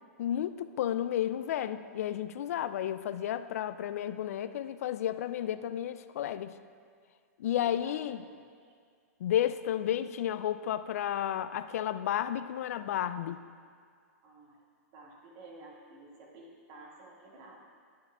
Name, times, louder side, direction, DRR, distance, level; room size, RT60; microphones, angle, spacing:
voice 1, 0.2-6.5 7.4-8.2 9.2-13.4, left 11 dB, 70° left, 12 dB, 0.4 m, -32 dB
voice 2, 7.5-8.7 14.2-14.6 14.9-17.6, right 2 dB, 45° right, -2 dB, 2.0 m, -52 dB
11.0 x 9.6 x 2.4 m, 2.1 s
hypercardioid pair, 130°, 8 cm